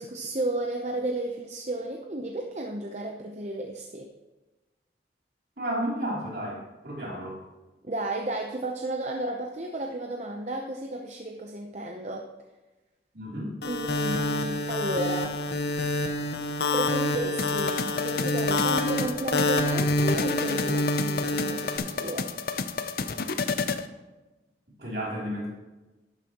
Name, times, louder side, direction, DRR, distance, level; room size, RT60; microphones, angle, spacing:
voice 1, 0.0-4.1 7.8-12.3 13.6-15.4 16.7-22.3, right 1 dB, 40° right, 1 dB, 0.7 m, -33 dB
voice 2, 5.6-7.4 13.1-13.6 24.8-25.5, equal, 65° right, -4 dB, 3.1 m, -32 dB
sound 1, 13.6-21.8, left 2 dB, 70° left, 1.0 m, -27 dB
sound 2, 17.4-23.9, left 5 dB, 55° left, 0.5 m, -31 dB
11.5 x 9.3 x 3.0 m, 1.1 s
head